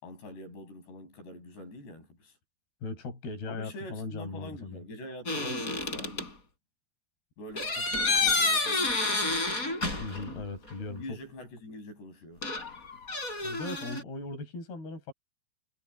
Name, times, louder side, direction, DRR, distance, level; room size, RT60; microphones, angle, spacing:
voice 1, 0.0-2.4 3.5-6.4 7.4-9.4 10.9-12.5, left 1 dB, 85° left, 9.0 m, -45 dB
voice 2, 2.8-4.8 10.0-11.2 13.4-15.1, left 3 dB, 70° left, 7.0 m, -38 dB
sound 1, 5.3-6.3 7.6-10.4 10.7-10.8 12.4-14.0, left 3 dB, 20° left, 5.6 m, -29 dB
omnidirectional pair, 4.7 m